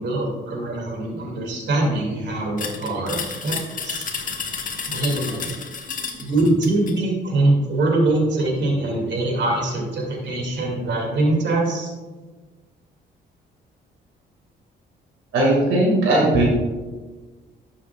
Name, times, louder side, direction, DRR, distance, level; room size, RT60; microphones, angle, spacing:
voice 1, 0.0-4.0 4.9-5.5 6.2-11.9, right 2 dB, 65° right, 0 dB, 2.5 m, -23 dB
sound 1, 2.6-7.0, left 5 dB, 45° left, 1.2 m, -31 dB
voice 2, 15.3-16.4, right 1 dB, 85° right, -3 dB, 2.1 m, -18 dB
11.5 x 7.1 x 2.4 m, 1.3 s
cardioid pair, 90°, 20 cm